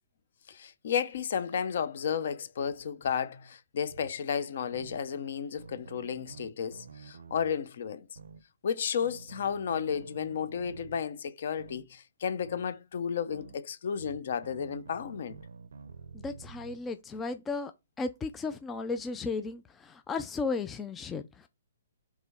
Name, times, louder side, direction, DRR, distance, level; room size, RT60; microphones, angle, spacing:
voice 1, 0.5-8.1 8.6-15.4, left 7 dB, 55° left, 0.7 m, -33 dB
sound 1, 3.9-4.1 4.7-5.0 5.6-7.6 8.2-8.4 9.0-11.0 11.6-11.8 12.4-12.7 13.3-13.6 14.0-16.8, right 5 dB, 90° right, 0.7 m, -49 dB
voice 2, 16.1-17.7 18.0-21.5, left 4 dB, 10° left, 0.3 m, -35 dB
4.9 x 3.6 x 5.4 m
hypercardioid pair, 165°, 0 cm